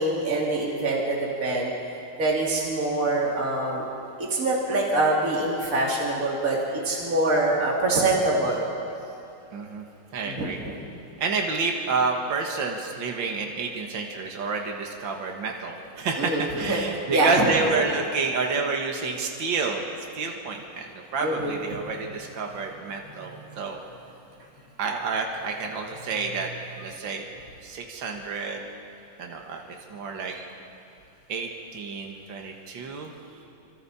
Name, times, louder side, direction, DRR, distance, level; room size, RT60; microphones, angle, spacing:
voice 1, 0.0-1.7 2.2-3.8 4.2-6.6 6.8-8.6 10.2-10.5 16.2-16.8 17.1-17.5 21.2-21.5, right 2 dB, 40° right, -3 dB, 3.2 m, -24 dB
voice 2, 9.5-9.9 10.1-10.6 11.2-19.9 20.2-23.8 24.8-26.5 26.8-27.2 27.6-28.6 29.2-29.6 29.9-30.5 31.3-33.1, right 4 dB, 65° right, 2 dB, 2.3 m, -29 dB
28.5 x 25.5 x 4.3 m, 2.8 s
omnidirectional pair, 2.3 m